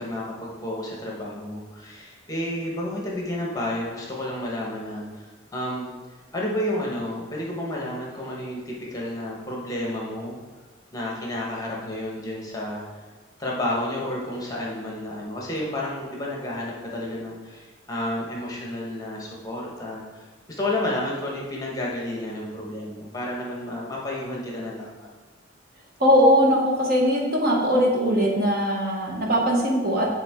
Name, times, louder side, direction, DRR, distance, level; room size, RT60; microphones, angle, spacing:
voice 1, 0.0-5.2 5.5-5.9 6.3-10.4 10.9-12.8 13.4-25.1, left 1 dB, 20° left, -3 dB, 1.1 m, -31 dB
voice 2, 26.0-30.1, equal, 50° right, -1 dB, 1.2 m, -20 dB
9.2 x 3.7 x 3.6 m, 1.3 s
head